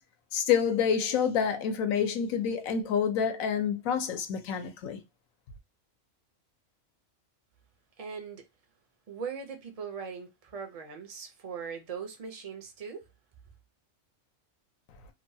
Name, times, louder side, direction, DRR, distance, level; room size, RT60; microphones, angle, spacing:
voice 1, 0.3-5.0, left 7 dB, 85° left, 1.1 m, -28 dB
voice 2, 8.0-8.4 9.1-13.0, right 6 dB, 55° right, 0.4 m, -40 dB
2.8 x 2.2 x 2.6 m
omnidirectional pair, 1.4 m